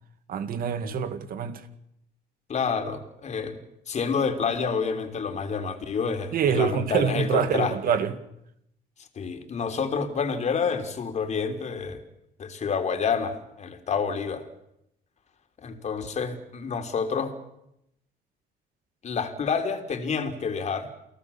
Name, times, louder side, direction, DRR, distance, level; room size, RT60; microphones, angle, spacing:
voice 1, 0.3-1.6 6.3-8.1, right 7 dB, 60° right, 2.1 m, -25 dB
voice 2, 2.5-3.6 3.9-7.7 9.2-12.0 12.4-14.5 15.6-17.3 19.0-20.9, left 5 dB, 40° left, 3.6 m, -28 dB
29.5 x 18.0 x 7.2 m
cardioid pair, 110°, 17 cm